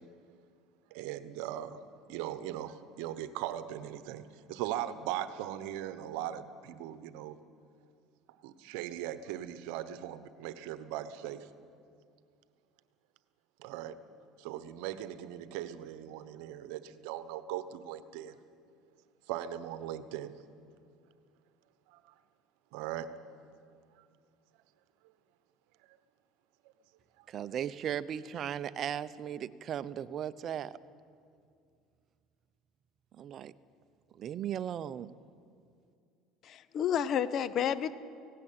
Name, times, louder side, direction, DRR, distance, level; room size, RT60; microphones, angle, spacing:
voice 1, 0.9-1.8 2.1-7.4 8.4-11.5 13.6-13.9 14.4-18.4 19.3-20.3 21.9-22.0 22.7-23.1, right 12 dB, 80° right, 13 dB, 1.0 m, -39 dB
voice 2, 27.3-30.7 33.2-33.5 34.2-35.1, right 9 dB, 45° right, 16 dB, 0.6 m, -37 dB
voice 3, 36.4-37.9, left 9 dB, 50° left, 15 dB, 0.9 m, -30 dB
18.0 x 17.0 x 8.8 m, 2.3 s
supercardioid pair, 105°, 0 cm